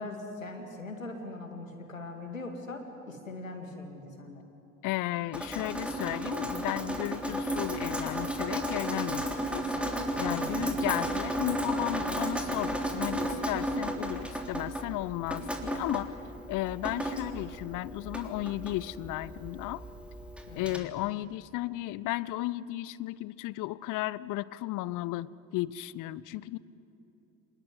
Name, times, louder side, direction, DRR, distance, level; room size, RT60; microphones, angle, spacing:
voice 1, 0.0-4.5 10.3-10.7 20.5-20.9, left 2 dB, 85° left, 5 dB, 2.2 m, -41 dB
voice 2, 4.8-9.7 10.1-16.2 16.5-19.8 20.5-26.6, left 16 dB, 55° left, 20 dB, 0.8 m, -34 dB
Drip, 5.3-20.8, right 1 dB, 5° right, 3.4 m, -34 dB
27.0 x 20.0 x 9.6 m, 2.9 s
figure-of-eight pair, 50°, 39 cm